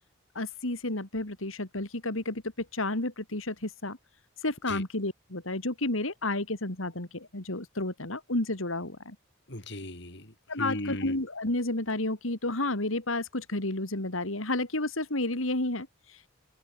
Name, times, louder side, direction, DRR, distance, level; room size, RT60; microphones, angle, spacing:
voice 1, 0.4-4.0 4.4-9.2 10.5-16.3, left 2 dB, 85° left, 3.5 m, -31 dB
voice 2, 9.5-11.2, left 1 dB, 60° left, 6.0 m, -37 dB
head